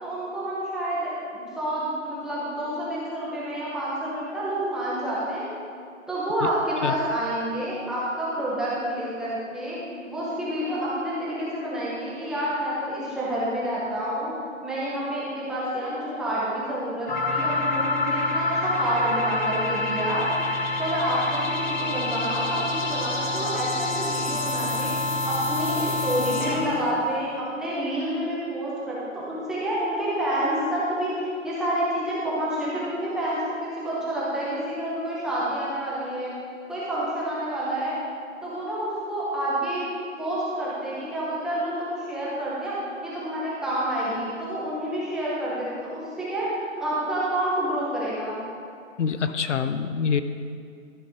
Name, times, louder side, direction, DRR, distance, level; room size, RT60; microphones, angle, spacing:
voice 1, 0.0-5.4 6.1-9.8 10.1-14.3 14.6-20.3 20.8-24.9 25.2-36.3 36.7-37.9 38.4-39.8 40.2-42.7 43.0-48.4, right 1 dB, ahead, -9 dB, 0.7 m, -28 dB
sound 1, 17.1-26.8, left 2 dB, 35° left, 1.4 m, -27 dB
voice 2, 49.0-50.2, left 6 dB, 65° left, 11 dB, 0.7 m, -25 dB
13.0 x 6.6 x 4.9 m, 2.4 s
hypercardioid pair, 150°, 40 cm